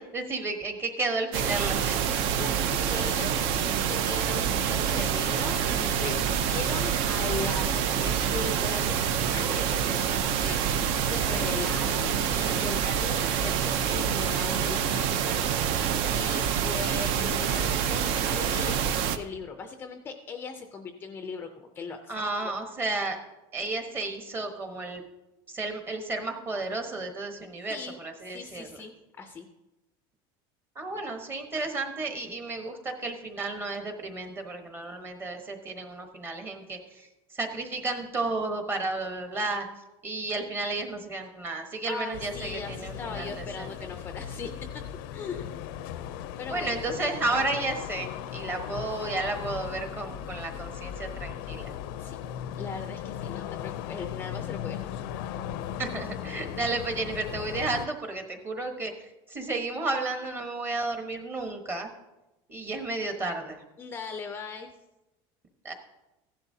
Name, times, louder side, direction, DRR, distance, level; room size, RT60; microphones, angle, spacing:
voice 1, 0.0-2.1 22.1-23.2 23.5-25.0 25.5-28.7 30.7-39.7 40.0-43.7 46.5-51.7 55.8-61.9 62.5-63.6 65.6-65.7, right 3 dB, 20° right, 5 dB, 1.1 m, -32 dB
sound 1, 1.3-19.2, right 8 dB, 50° right, 0.6 m, -27 dB
voice 2, 2.4-3.4 3.9-15.5 15.7-22.1 22.4-22.5 27.7-28.0 28.3-29.5 41.9-44.8 45.1-45.5 46.4-46.9 52.0-52.2 52.6-54.9 63.8-64.7, left 5 dB, 20° left, 6 dB, 0.5 m, -39 dB
sound 2, 42.1-57.9, left 10 dB, 70° left, 0.5 m, -37 dB
15.0 x 11.0 x 2.7 m, 1.0 s
cardioid pair, 180°, 12 cm